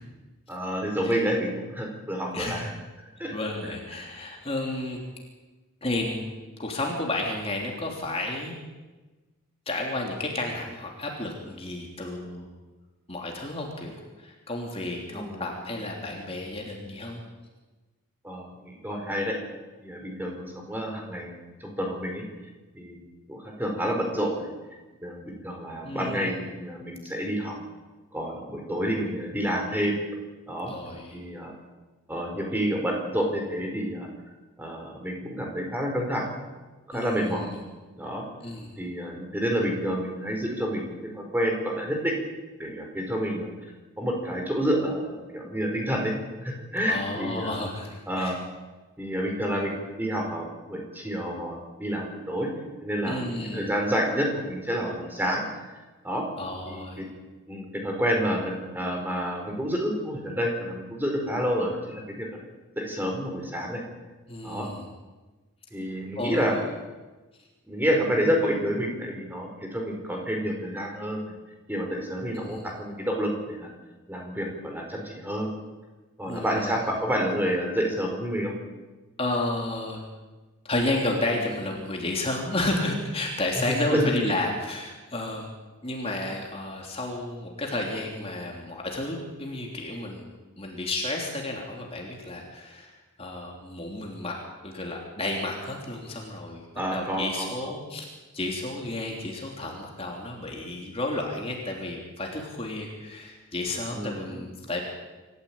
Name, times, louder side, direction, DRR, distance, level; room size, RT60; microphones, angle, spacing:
voice 1, 0.5-2.7 3.2-3.3 15.1-15.5 18.2-19.3 19.8-21.3 21.6-22.2 22.7-23.0 23.3-24.5 25.0-27.6 28.1-30.0 30.5-30.7 31.1-31.5 32.1-34.1 34.6-36.2 36.9-37.5 38.0-38.2 38.8-42.1 42.6-43.5 44.0-46.1 46.4-47.6 48.1-48.3 49.0-52.5 52.8-53.3 53.5-55.4 56.0-56.3 56.6-57.0 57.5-62.3 62.8-63.8 64.4-64.7 65.7-66.6 67.7-71.3 71.7-73.7 74.1-75.5 76.2-78.5 83.6-84.0 96.7-97.7 103.9-104.4, equal, 10° right, 1 dB, 4.6 m, -29 dB
voice 2, 2.3-2.7 3.3-5.0 5.8-6.2 6.6-8.5 9.6-12.5 13.1-17.2 25.8-26.3 30.7-31.2 36.9-37.6 38.4-38.8 46.9-48.4 53.1-53.7 56.4-57.0 64.3-64.8 66.1-66.6 72.3-72.8 76.2-76.8 79.2-80.0 80.6-85.5 85.8-90.2 90.6-94.4 94.6-96.6 96.9-98.1 98.3-104.8, left 2 dB, 25° left, 0 dB, 3.4 m, -32 dB
27.0 x 14.5 x 8.8 m, 1.2 s
head